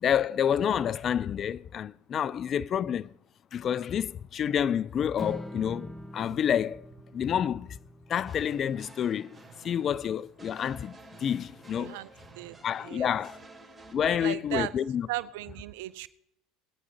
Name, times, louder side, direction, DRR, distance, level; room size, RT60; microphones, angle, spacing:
voice 1, 0.0-3.1 3.5-6.9 7.1-7.7 8.1-9.3 9.6-10.9 11.2-12.0 12.6-13.4 13.9-15.1, left 9 dB, 45° left, 0.4 m, -28 dB
Strum, 5.2-11.4, equal, 5° right, 1.2 m, -46 dB
sound 1, 8.3-13.9, right 3 dB, 20° right, 3.0 m, -51 dB
voice 2, 11.8-12.1 12.4-13.2 14.0-14.7 15.1-16.1, right 16 dB, 70° right, 0.5 m, -36 dB
20.0 x 9.4 x 2.9 m
hypercardioid pair, 75°, 0 cm